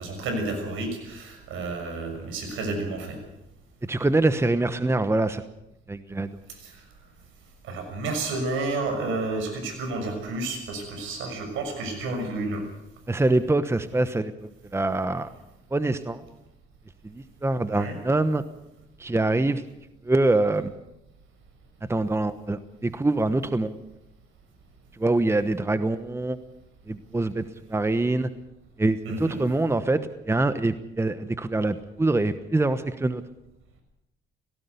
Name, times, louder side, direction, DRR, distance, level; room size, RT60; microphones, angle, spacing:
voice 1, 0.0-3.2 6.5-6.8 7.6-12.6 17.7-18.0 29.0-29.4, right 2 dB, 85° right, 4 dB, 6.4 m, -31 dB
voice 2, 3.8-5.4 5.9-6.3 13.1-15.3 15.7-16.2 17.0-18.4 19.0-19.6 20.0-20.7 21.9-23.7 25.0-26.4 26.9-27.4 27.7-28.3 28.8-33.2, right 2 dB, 15° right, 12 dB, 1.1 m, -24 dB
18.5 x 17.0 x 8.3 m, 0.88 s
cardioid pair, 90°, 20 cm